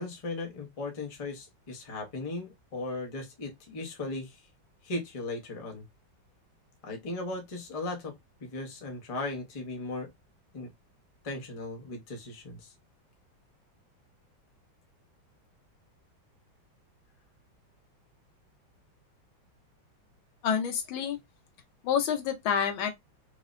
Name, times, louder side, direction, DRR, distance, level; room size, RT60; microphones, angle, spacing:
voice 1, 0.0-4.4 4.8-5.8 6.8-8.1 8.4-10.1 10.5-10.7 11.2-12.7, left 2 dB, 45° left, 0.4 m, -37 dB
voice 2, 20.4-21.2 21.8-22.9, left 7 dB, 90° left, 1.6 m, -28 dB
4.6 x 2.1 x 2.4 m
omnidirectional pair, 2.1 m